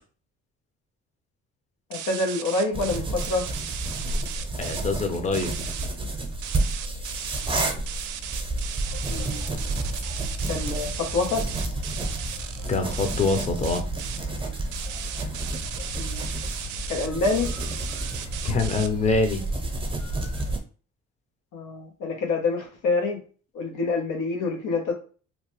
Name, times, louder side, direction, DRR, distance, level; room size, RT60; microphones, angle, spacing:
voice 1, 1.9-3.5 9.1-9.4 10.5-11.5 16.0-16.2 16.9-17.5 21.5-23.2 23.5-24.9, left 3 dB, 85° left, 2 dB, 0.9 m, -27 dB
sound 1, 1.9-4.8 5.3-5.9 6.4-14.2 14.7-18.9, right 10 dB, 80° right, 0.5 m, -36 dB
sound 2, 2.7-20.6, right 2 dB, 20° right, 0.6 m, -31 dB
voice 2, 4.6-5.5 12.7-13.8 18.4-19.4, left 3 dB, 25° left, 5 dB, 0.6 m, -24 dB
sound 3, 8.8-20.6, equal, 50° left, 1.2 m, -37 dB
2.9 x 2.1 x 3.0 m, 0.39 s
cardioid pair, 90°, 30 cm